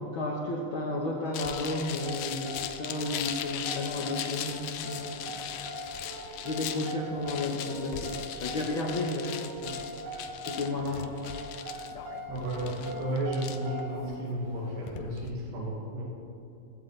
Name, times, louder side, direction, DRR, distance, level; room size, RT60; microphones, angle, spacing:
voice 1, 0.0-5.4 6.4-10.0 10.4-11.1, left 2 dB, 75° left, -1 dB, 1.1 m, -33 dB
sound 1, 1.3-15.3, left 10 dB, 90° left, 1.5 m, -39 dB
sound 2, 1.3-14.1, right 1 dB, 65° right, 2.9 m, -41 dB
voice 2, 12.3-16.0, right 1 dB, 85° right, -4 dB, 3.6 m, -33 dB
16.5 x 16.0 x 3.3 m, 2.8 s
omnidirectional pair, 3.9 m